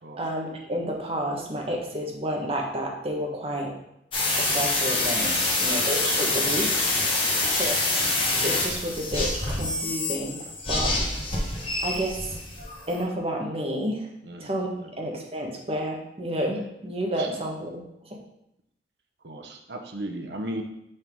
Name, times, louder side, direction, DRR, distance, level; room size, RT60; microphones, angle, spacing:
voice 1, 0.2-3.7 4.4-6.7 7.4-7.8 8.4-10.9 11.5-12.4 12.9-14.1 14.4-14.7 15.0-17.8, equal, 35° right, 1 dB, 1.1 m, -30 dB
sound 1, 4.1-13.0, left 2 dB, 30° left, 1.3 m, -26 dB
voice 2, 5.4-5.7 6.0-6.4 7.2-7.9 14.2-15.0 17.1-17.3 19.2-20.6, right 1 dB, 70° right, 4 dB, 0.9 m, -37 dB
5.5 x 5.5 x 3.5 m, 0.81 s
head